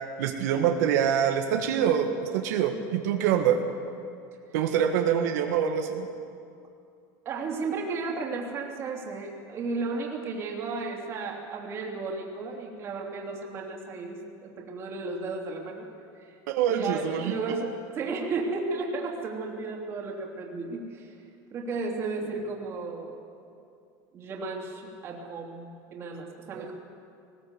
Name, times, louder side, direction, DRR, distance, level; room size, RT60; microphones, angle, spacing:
voice 1, 0.2-3.6 4.5-6.1 16.5-17.3 26.5-26.7, right 8 dB, 80° right, 3 dB, 1.8 m, -25 dB
voice 2, 7.2-15.9 16.2-16.3 16.7-21.1 21.5-23.2 24.1-26.7, right 3 dB, 30° right, 0 dB, 2.9 m, -34 dB
20.0 x 18.5 x 8.2 m, 2.4 s
cardioid pair, 170°, 9 cm